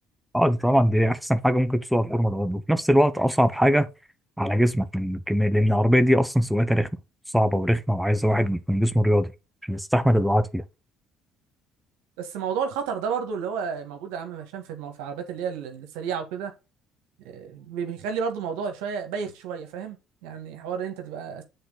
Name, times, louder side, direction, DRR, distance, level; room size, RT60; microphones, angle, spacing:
voice 1, 0.3-3.9 4.4-6.9 7.3-9.3 9.7-10.6, equal, ahead, 0.9 m, -21 dB
voice 2, 12.2-16.5 17.2-20.0 20.2-21.4, right 6 dB, 85° right, 1.5 m, -31 dB
7.8 x 4.0 x 3.9 m
supercardioid pair, 75°, 0 cm